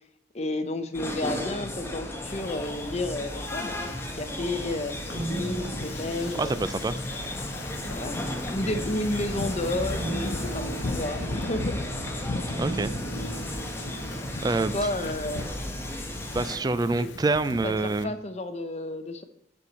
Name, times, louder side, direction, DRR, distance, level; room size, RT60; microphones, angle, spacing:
voice 1, 0.3-6.6 7.9-8.2 8.5-12.2 14.7-15.4 17.0-17.1 17.6-17.7 18.0-19.2, left 2 dB, 35° left, 8 dB, 0.8 m, -32 dB
sound 1, 0.9-16.6, left 1 dB, 15° left, 0.9 m, -34 dB
Wind / Ocean, 2.2-18.0, left 3 dB, 80° left, 0.6 m, -40 dB
sound 2, 5.1-7.8 8.6-15.5 15.9-16.2, right 2 dB, 45° right, 1.3 m, -39 dB
voice 2, 6.4-6.9 12.6-12.9 14.4-14.7 16.3-18.1, right 3 dB, 20° right, 14 dB, 0.3 m, -26 dB
7.0 x 4.5 x 6.8 m, 0.79 s
head